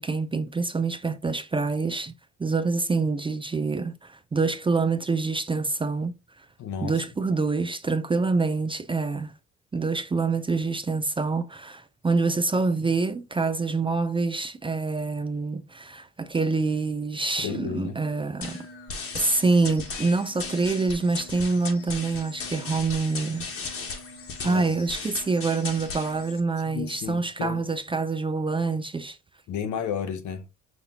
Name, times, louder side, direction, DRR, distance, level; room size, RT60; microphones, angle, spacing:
voice 1, 0.0-2.1 2.4-6.5 6.8-9.3 9.7-18.6 19.1-23.5 24.4-29.2, right 3 dB, 20° right, 0.4 m, -26 dB
voice 2, 6.6-7.1 17.4-18.0 24.4-24.6 26.6-27.6 29.5-30.5, left 7 dB, 70° left, 0.8 m, -32 dB
sound 1, 18.4-26.4, left 4 dB, 45° left, 1.2 m, -37 dB
5.7 x 2.7 x 2.7 m
cardioid pair, 90°, 30 cm